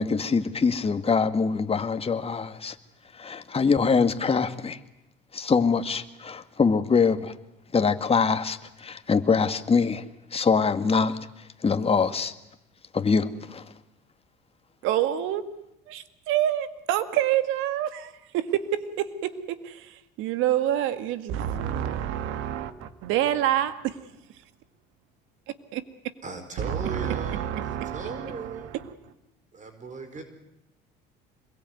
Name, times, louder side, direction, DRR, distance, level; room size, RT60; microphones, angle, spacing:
voice 1, 0.0-2.8 3.1-4.8 5.3-7.3 7.7-10.0 10.3-11.2 11.6-12.3 12.9-13.7, left 5 dB, 30° left, 2.1 m, -24 dB
voice 2, 14.8-15.5 15.9-19.3 19.6-24.0 25.7-25.8 26.6-28.8, right 11 dB, 70° right, 2.1 m, -27 dB
voice 3, 26.2-28.7 29.5-30.2, right 4 dB, 35° right, 4.7 m, -37 dB
26.5 x 22.0 x 9.5 m
supercardioid pair, 75°, 21 cm